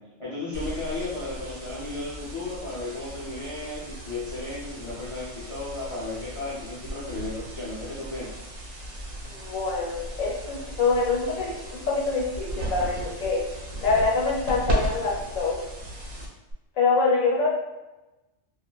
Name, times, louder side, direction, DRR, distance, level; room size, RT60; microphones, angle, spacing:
voice 1, 0.2-8.3, left 2 dB, 40° left, -9 dB, 0.5 m, -34 dB
sound 1, 0.5-16.5, right 1 dB, 90° right, 1.1 m, -36 dB
voice 2, 9.2-13.4 13.8-15.6 16.8-17.6, left 4 dB, 85° left, -3 dB, 1.1 m, -25 dB
3.0 x 2.4 x 2.2 m, 1.1 s
omnidirectional pair, 1.4 m